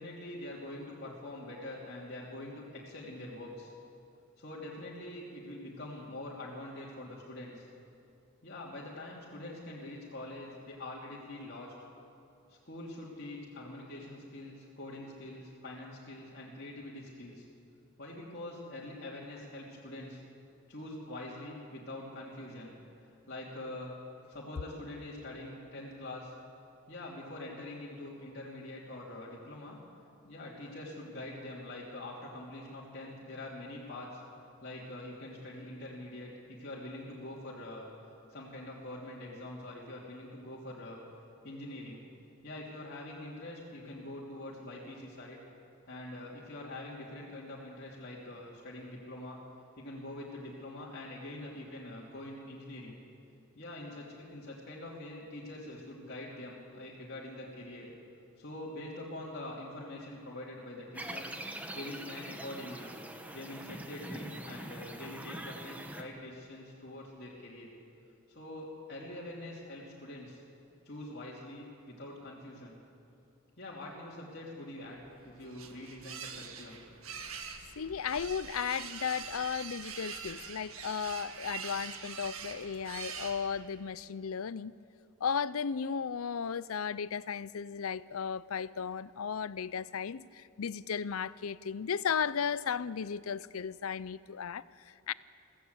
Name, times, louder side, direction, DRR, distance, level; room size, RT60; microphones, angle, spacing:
voice 1, 0.0-3.7 4.4-7.7 8.4-11.7 12.5-17.4 18.0-20.2 20.7-22.7 23.0-23.9 24.3-26.3 26.9-29.8 30.2-34.2 34.6-37.9 38.3-41.0 41.4-42.0 42.4-45.4 45.9-49.4 49.8-53.0 53.5-57.9 58.4-61.3 61.7-62.9 63.3-67.7 68.3-70.4 70.8-72.8 73.6-76.8, left 1 dB, 50° left, 3.1 m, -44 dB
sound 1, 60.9-66.0, right 1 dB, 5° right, 1.3 m, -43 dB
sound 2, 75.0-83.9, right 6 dB, 75° right, 1.8 m, -44 dB
voice 2, 77.8-84.7 85.2-95.1, left 7 dB, 80° left, 0.5 m, -35 dB
23.5 x 16.5 x 8.2 m
head